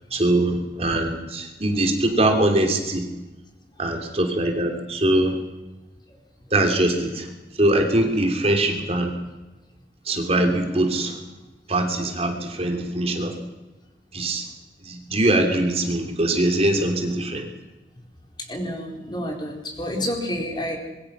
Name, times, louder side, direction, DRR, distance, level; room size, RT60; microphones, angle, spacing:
voice 1, 0.1-3.0 3.8-5.4 6.5-7.3 7.6-9.1 10.0-11.2 11.7-13.4 14.1-14.4 14.8-17.5, right 1 dB, 35° right, 4 dB, 3.1 m, -22 dB
voice 2, 18.4-20.8, left 1 dB, 25° left, 1 dB, 4.6 m, -29 dB
25.5 x 22.0 x 6.2 m, 1.1 s
head